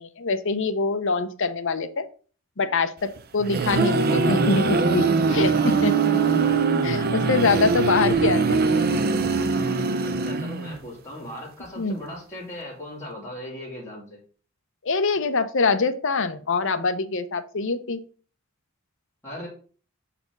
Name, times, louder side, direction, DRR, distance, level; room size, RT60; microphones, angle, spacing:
voice 1, 0.0-2.0 2.6-5.9 6.8-8.6 11.8-12.0 14.8-18.0, left 4 dB, 60° left, 10 dB, 0.7 m, -24 dB
sound 1, 3.2-10.9, right 4 dB, 45° right, 0.5 m, -22 dB
voice 2, 10.2-14.2 19.2-19.5, left 1 dB, 10° left, -6 dB, 2.6 m, -38 dB
7.1 x 4.2 x 5.2 m, 0.41 s
head